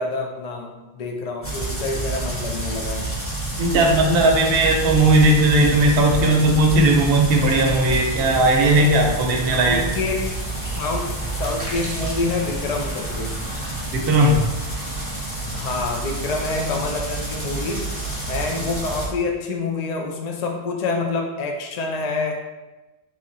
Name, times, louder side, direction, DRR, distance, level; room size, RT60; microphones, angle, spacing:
voice 1, 0.0-3.1 9.5-10.3 10.6-13.4 15.5-18.0 18.3-22.3, left 3 dB, 55° left, 2 dB, 0.4 m, -27 dB
sound 1, 1.4-19.1, right 2 dB, 15° left, 0.7 m, -28 dB
voice 2, 3.6-9.9 13.9-14.4, right 1 dB, 65° right, 2 dB, 0.8 m, -17 dB
3.1 x 2.5 x 3.8 m, 1.1 s
omnidirectional pair, 1.2 m